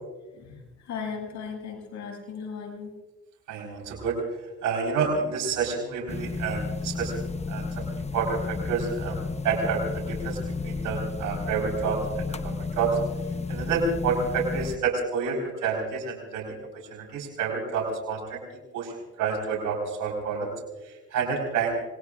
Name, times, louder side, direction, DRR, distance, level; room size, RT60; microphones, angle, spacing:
voice 1, 0.3-2.9, left 6 dB, 70° left, -1 dB, 7.2 m, -37 dB
voice 2, 3.5-4.2 4.6-9.2 9.4-10.4 10.6-13.0 13.5-16.6 16.9-18.4 18.7-18.9 19.2-20.5 20.8-21.7, right 5 dB, 90° right, 0 dB, 4.4 m, -29 dB
sound 1, 6.1-14.8, left 4 dB, 20° left, 0.9 m, -32 dB
26.5 x 21.0 x 2.5 m, 1.2 s
cardioid pair, 90°, 30 cm